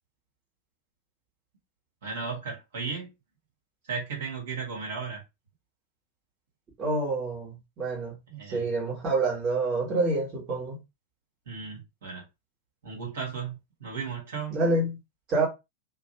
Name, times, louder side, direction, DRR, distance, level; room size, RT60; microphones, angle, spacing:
voice 1, 2.0-3.1 3.9-5.2 8.3-8.6 11.5-12.2 12.8-14.6, right 5 dB, 60° right, 1.3 m, -35 dB
voice 2, 6.8-8.1 8.5-10.8 14.5-15.0 15.3-15.5, right 2 dB, 30° right, 1.2 m, -27 dB
2.5 x 2.3 x 2.9 m
figure-of-eight pair, 90°, 0 cm